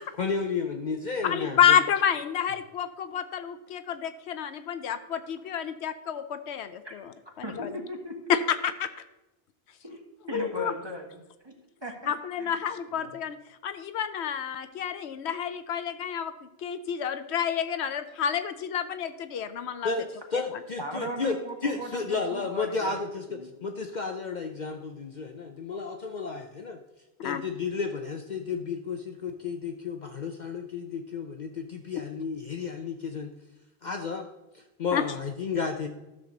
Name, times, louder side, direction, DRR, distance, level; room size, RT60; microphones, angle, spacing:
voice 1, 0.2-1.8 19.8-26.8 27.2-33.3 33.8-34.3 34.5-35.9, left 4 dB, 50° left, 5 dB, 0.7 m, -32 dB
voice 2, 1.2-7.7 8.3-8.9 10.3-10.7 12.1-13.4 13.6-16.3 16.6-19.9 27.2-27.4 34.9-35.0, left 8 dB, 80° left, 11 dB, 0.9 m, -29 dB
voice 3, 7.4-8.1 9.8-10.0 10.3-11.6 11.8-12.1 12.4-12.5 13.0-13.1 20.8-23.0 23.3-23.5, equal, 25° right, 1 dB, 1.5 m, -37 dB
13.0 x 6.5 x 3.9 m, 1.0 s
omnidirectional pair, 1.1 m